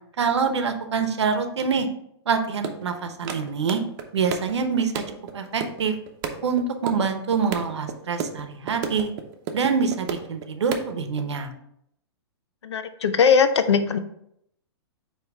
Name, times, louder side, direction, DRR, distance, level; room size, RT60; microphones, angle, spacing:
voice 1, 0.2-1.9 2.3-3.8 4.1-5.0 5.3-5.9 6.4-9.1 9.5-11.5, right 5 dB, 85° right, 7 dB, 0.9 m, -25 dB
sound 1, 2.6-7.9 8.2-8.4 8.7-10.5 10.7-11.2, right 6 dB, 45° right, 0.8 m, -32 dB
voice 2, 12.6-14.0, left 6 dB, 90° left, 10 dB, 0.6 m, -20 dB
8.8 x 3.0 x 3.6 m, 0.74 s
hypercardioid pair, 135°, 14 cm